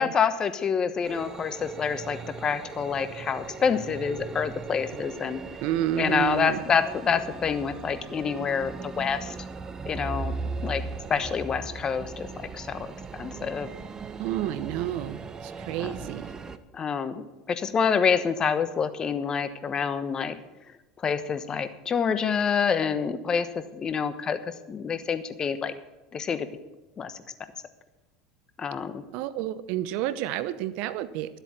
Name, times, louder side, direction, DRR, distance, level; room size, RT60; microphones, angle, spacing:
voice 1, 0.0-5.4 6.0-9.3 9.9-10.3 10.6-10.8 11.1-12.3 12.5-12.9 13.2-13.7 15.8-15.9 16.7-20.3 21.0-24.4 24.7-25.7 26.1-26.5 27.0-27.2 28.6-29.0, left 6 dB, 35° left, 11 dB, 1.1 m, -27 dB
sound 1, 1.0-16.6, right 4 dB, 25° right, 0.9 m, -38 dB
voice 2, 5.6-6.6 14.2-16.3 29.1-31.4, right 12 dB, 65° right, 15 dB, 0.7 m, -30 dB
12.5 x 8.0 x 7.4 m, 1.0 s
hypercardioid pair, 85°, 2 cm